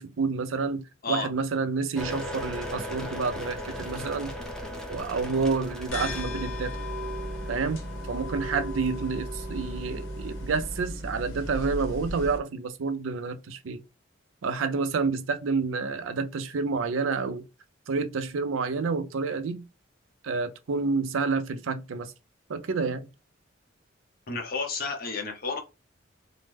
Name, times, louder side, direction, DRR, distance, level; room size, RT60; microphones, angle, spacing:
voice 1, 0.0-4.3 4.9-6.7 7.5-13.8 14.4-17.4 17.9-19.6 20.2-22.1 22.5-23.1, right 4 dB, 85° right, 0.5 m, -29 dB
sound 1, 2.0-10.8, equal, 5° left, 0.7 m, -39 dB
sound 2, 5.9-12.4, equal, 90° left, 0.8 m, -35 dB
voice 2, 24.3-25.6, left 4 dB, 50° left, 0.8 m, -31 dB
3.1 x 2.1 x 3.3 m
head